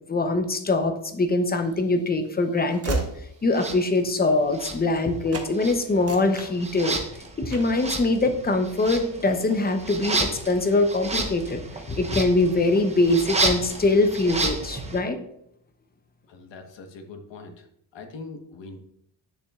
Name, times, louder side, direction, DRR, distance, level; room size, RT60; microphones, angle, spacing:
voice 1, 0.1-3.0 3.4-7.0 7.4-11.6 11.9-15.2, left 2 dB, 20° left, 7 dB, 0.7 m, -23 dB
Train / Slam, 1.4-5.0 5.3-5.5 5.9-7.1 7.5-7.8, right 3 dB, 30° right, 1.1 m, -35 dB
sound 1, 3.5-3.8 4.5-5.3 5.5-15.0, right 3 dB, 15° right, 0.9 m, -31 dB
voice 2, 16.3-17.7 17.9-18.8, left 3 dB, 70° left, 5 dB, 1.3 m, -42 dB
9.5 x 6.9 x 2.4 m, 0.73 s
wide cardioid pair, 150°, 45 cm